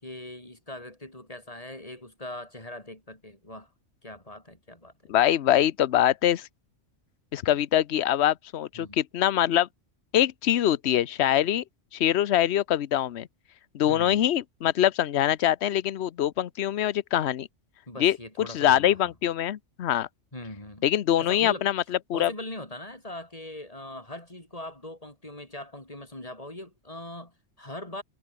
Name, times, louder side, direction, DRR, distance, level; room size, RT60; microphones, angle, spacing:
voice 1, 0.0-3.7 4.0-5.1 8.7-9.0 13.9-14.2 17.9-19.1 20.3-20.8 21.2-21.7 22.1-28.0, left 1 dB, 25° left, 5.2 m, -41 dB
voice 2, 5.1-6.5 7.3-9.7 10.1-11.6 11.9-13.3 13.7-17.5 18.0-20.1 20.8-22.3, left 11 dB, 60° left, 1.0 m, -24 dB
omnidirectional pair, 1.3 m